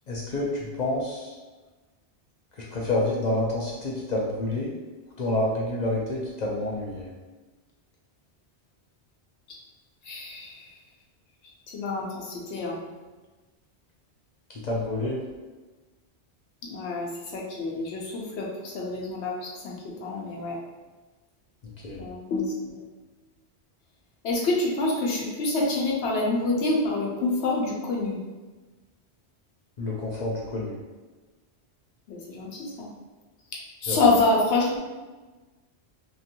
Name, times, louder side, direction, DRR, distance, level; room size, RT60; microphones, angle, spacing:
voice 1, 0.1-1.3 2.6-4.7 5.2-7.1 14.5-15.2 21.6-22.1 29.8-30.8 33.9-34.1, left 2 dB, 55° left, -3 dB, 0.5 m, -28 dB
voice 2, 10.0-10.6 11.7-12.8 16.6-20.6 21.9-22.8 24.2-28.2 32.1-32.9 33.8-34.8, left 2 dB, 80° left, -2 dB, 0.9 m, -27 dB
2.9 x 2.5 x 2.7 m, 1.2 s
omnidirectional pair, 1.1 m